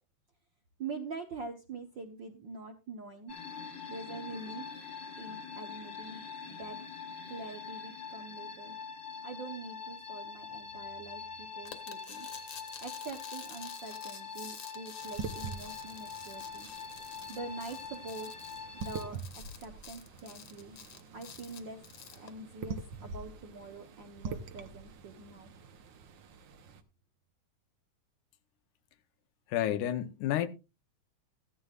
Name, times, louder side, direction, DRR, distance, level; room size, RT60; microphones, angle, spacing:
voice 1, 0.8-3.4 3.9-4.6 5.2-6.8 7.3-8.8 9.2-12.3 12.8-16.7 17.3-20.8 21.1-21.8 22.1-25.5, right 4 dB, 65° right, 1.1 m, -45 dB
sound 1, 3.3-19.1, left 5 dB, 40° left, 1.2 m, -44 dB
sound 2, 11.7-22.3, left 8 dB, 55° left, 1.9 m, -50 dB
sound 3, 15.0-26.8, right 5 dB, 85° right, 1.0 m, -45 dB
voice 2, 29.5-30.5, left 12 dB, 85° left, 2.4 m, -30 dB
15.0 x 11.5 x 2.4 m
omnidirectional pair, 3.5 m